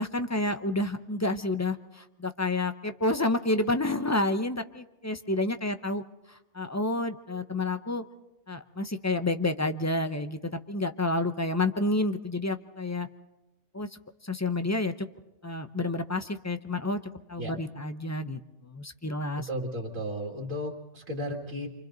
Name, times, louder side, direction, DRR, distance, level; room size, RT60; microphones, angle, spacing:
voice 1, 0.0-6.0 6.3-8.0 8.5-13.1 13.7-13.9 14.2-14.9 15.4-17.0 17.3-19.5, left 2 dB, 20° left, 9 dB, 0.6 m, -29 dB
voice 2, 19.4-21.7, equal, 85° right, -1 dB, 2.4 m, -34 dB
30.0 x 25.0 x 4.0 m, 0.96 s
omnidirectional pair, 1.3 m